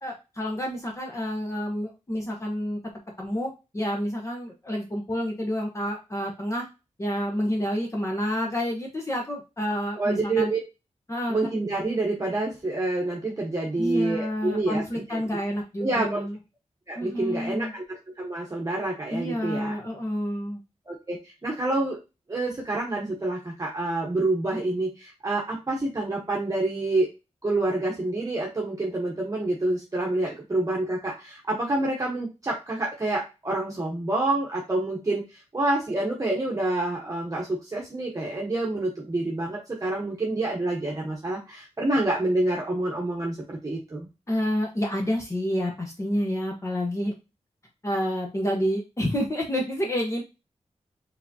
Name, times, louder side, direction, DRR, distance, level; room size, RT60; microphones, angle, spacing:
voice 1, 0.0-2.8 3.2-6.7 7.0-10.5 11.1-11.4 13.8-16.3 17.0-17.7 19.1-20.6 44.3-47.1 47.8-50.2, equal, 25° left, 0 dB, 1.0 m, -29 dB
voice 2, 10.0-10.6 11.3-15.2 15.8-16.3 16.9-19.8 20.9-22.0 22.3-27.1 27.4-44.1, right 2 dB, 30° right, -3 dB, 1.1 m, -27 dB
4.8 x 3.5 x 2.7 m, 0.27 s
wide cardioid pair, 125°, 12 cm